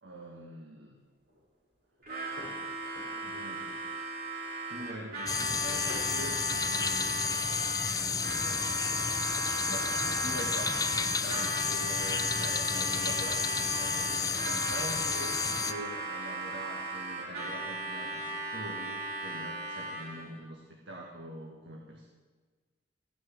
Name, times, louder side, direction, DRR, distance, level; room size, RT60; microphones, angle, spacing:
voice 1, 0.0-1.0 3.2-3.9 4.7-15.4 15.6-22.0, right 1 dB, 65° right, 0 dB, 2.0 m, -44 dB
sound 1, 0.9-19.3, equal, 80° right, 6.5 m, -56 dB
Harmonica, 2.0-20.3, right 2 dB, 50° right, 3.4 m, -37 dB
sound 2, 5.3-15.7, left 5 dB, 20° left, 0.6 m, -31 dB
15.5 x 11.0 x 7.6 m, 1.4 s
head